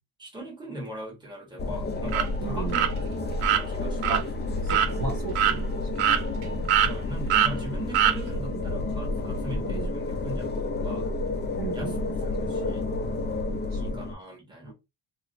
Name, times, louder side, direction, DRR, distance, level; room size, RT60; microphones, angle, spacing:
voice 1, 0.2-2.9 3.4-4.2 6.8-11.1 11.7-12.0 12.2-12.9 13.7-14.7, equal, 10° right, 1.4 m, -40 dB
sound 1, 1.6-14.1, left 2 dB, 20° left, 0.5 m, -30 dB
sound 2, 2.1-2.3 2.7-2.9 3.4-3.6 4.0-4.2 4.7-4.9 5.4-5.6 6.0-6.4 6.7-6.9 7.3-7.5 7.9-8.2, right 10 dB, 90° right, 0.6 m, -22 dB
voice 2, 2.4-2.9 4.1-4.2 4.6-5.7 8.5-8.9 9.5-9.9 11.5-12.2 13.6-14.0 14.6-14.7, right 4 dB, 45° right, 1.3 m, -36 dB
2.9 x 2.9 x 2.6 m
cardioid pair, 105°, 48 cm